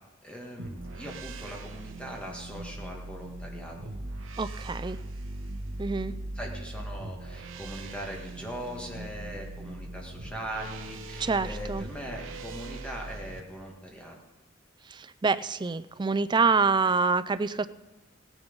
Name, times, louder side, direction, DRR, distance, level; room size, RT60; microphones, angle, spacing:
voice 1, 0.2-3.9 6.4-14.2, equal, 5° left, -1 dB, 1.7 m, -40 dB
sound 1, 0.6-13.4, right 2 dB, 80° right, 1.1 m, -40 dB
voice 2, 4.4-5.0 5.8-6.1 11.2-11.8 14.9-17.7, right 4 dB, 20° right, 13 dB, 0.4 m, -26 dB
16.5 x 10.5 x 5.3 m, 1.1 s
head